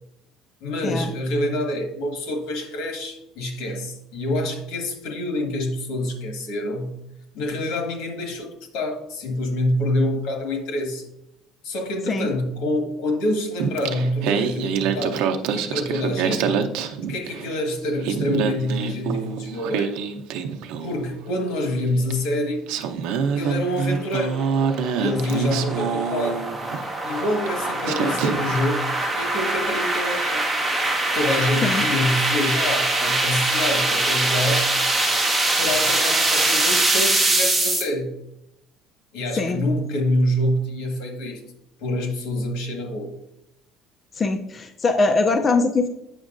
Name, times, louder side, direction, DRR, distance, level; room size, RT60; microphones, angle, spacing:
voice 1, 0.6-7.0 7.3-11.1 11.6-16.6 17.1-19.9 20.8-22.6 23.4-24.4 24.9-26.4 27.0-30.4 31.1-34.7 35.6-38.2 39.1-41.4 41.8-43.1, left 1 dB, 85° left, 3 dB, 1.6 m, -26 dB
Singing, 13.6-17.5 17.9-21.1 22.1-22.2 22.7-26.9 27.5-27.6 27.8-28.6, right 6 dB, 85° right, 0.6 m, -26 dB
sound 1, 23.9-37.8, right 2 dB, 5° right, 1.7 m, -23 dB
voice 2, 44.1-45.9, left 3 dB, 25° left, 6 dB, 0.4 m, -22 dB
8.0 x 6.2 x 2.5 m, 0.85 s
cardioid pair, 155°, 0 cm